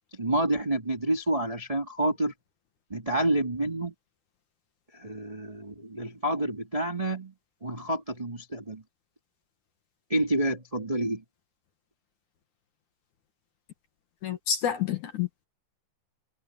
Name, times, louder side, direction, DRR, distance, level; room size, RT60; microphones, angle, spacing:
voice 1, 0.1-2.3 2.9-3.9 4.9-7.3 7.6-8.8 10.1-11.2, right 1 dB, 10° right, 2.4 m, -28 dB
voice 2, 14.2-15.4, left 8 dB, 60° left, 2.2 m, -29 dB
omnidirectional pair, 5.2 m